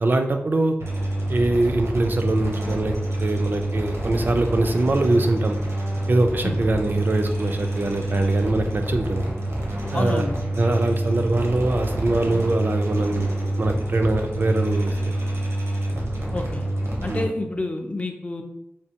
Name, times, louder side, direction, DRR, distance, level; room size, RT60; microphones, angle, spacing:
voice 1, 0.0-0.8 1.3-5.6 6.1-9.3 9.9-10.3 10.6-13.3 13.6-15.2 17.1-17.3, right 2 dB, 50° right, 5 dB, 0.3 m, -23 dB
sound 1, 0.8-17.2, right 1 dB, 80° right, 0.8 m, -27 dB
voice 2, 9.9-10.4 16.3-16.7 17.0-18.4, left 2 dB, 30° left, 5 dB, 0.4 m, -28 dB
3.2 x 2.6 x 2.8 m, 0.80 s
wide cardioid pair, 80°, 4 cm